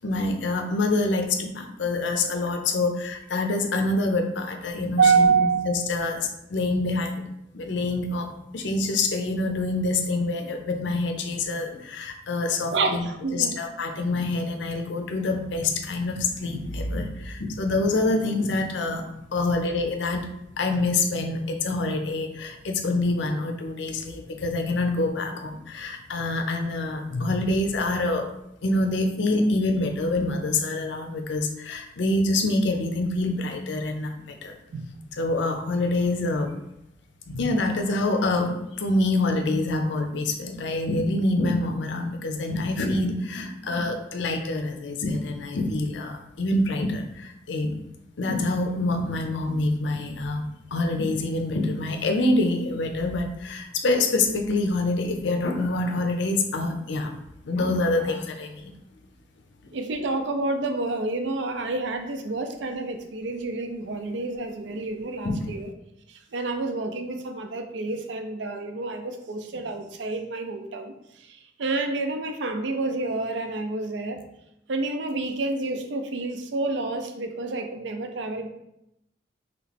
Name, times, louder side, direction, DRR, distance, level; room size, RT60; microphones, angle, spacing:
voice 1, 0.0-7.3 7.5-8.3 8.5-20.3 20.6-28.3 28.6-34.5 35.2-36.5 37.3-47.8 48.2-57.1 57.4-58.7 59.6-59.7 65.2-65.5, left 2 dB, 70° left, 4 dB, 0.5 m, -26 dB
voice 2, 5.0-5.8 12.7-13.6 34.7-34.9 59.7-65.7 66.1-74.2 74.7-78.5, right 4 dB, 70° right, 6 dB, 0.5 m, -28 dB
3.1 x 3.0 x 4.1 m, 0.83 s
head